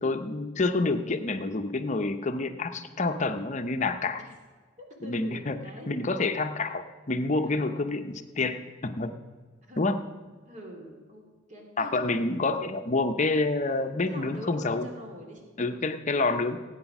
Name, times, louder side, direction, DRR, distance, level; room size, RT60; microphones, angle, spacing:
voice 1, 0.0-4.2 5.0-5.6 5.9-9.1 9.8-10.0 11.8-14.9 15.6-16.6, left 3 dB, 35° left, 8 dB, 0.7 m, -28 dB
voice 2, 5.0-5.9 7.4-7.8 9.7-10.0 10.5-11.2 11.5-12.2 14.0-15.4 15.7-15.9, equal, 40° right, 1 dB, 2.9 m, -43 dB
17.0 x 8.9 x 6.0 m, 1.5 s
head